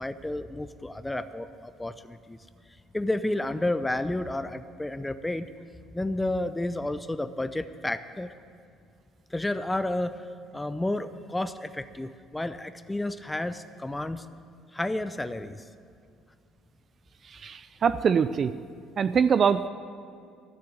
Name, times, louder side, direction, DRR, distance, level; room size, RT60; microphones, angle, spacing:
voice 1, 0.0-2.4 2.9-5.5 5.9-8.3 9.3-10.2 10.5-14.2 14.7-15.6, left 1 dB, 10° left, 12 dB, 0.6 m, -31 dB
voice 2, 17.3-18.5 19.0-19.7, right 7 dB, 45° right, 12 dB, 0.4 m, -23 dB
13.0 x 6.8 x 9.4 m, 2.4 s
hypercardioid pair, 65°, 0 cm